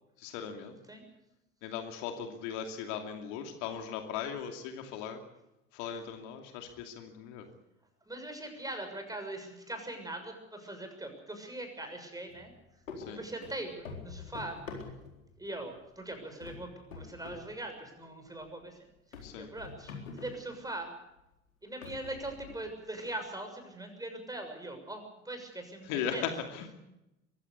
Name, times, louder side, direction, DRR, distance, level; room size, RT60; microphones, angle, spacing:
voice 1, 0.2-0.8 1.6-5.2 5.7-7.5 13.0-13.2 19.2-19.5 25.9-26.7, left 8 dB, 65° left, 5 dB, 2.7 m, -38 dB
voice 2, 8.1-12.5 13.1-14.6 15.4-20.9 21.6-26.2, right 1 dB, 10° right, 5 dB, 6.7 m, -41 dB
sound 1, 12.3-12.5 12.9-15.3 15.8-16.1 16.4-17.5 17.8-17.9 18.4-18.5 19.1-20.5 21.2-21.3 21.8-22.8, left 4 dB, 80° left, 4.2 m, -45 dB
23.0 x 16.0 x 8.3 m, 0.90 s
figure-of-eight pair, 70°, 39 cm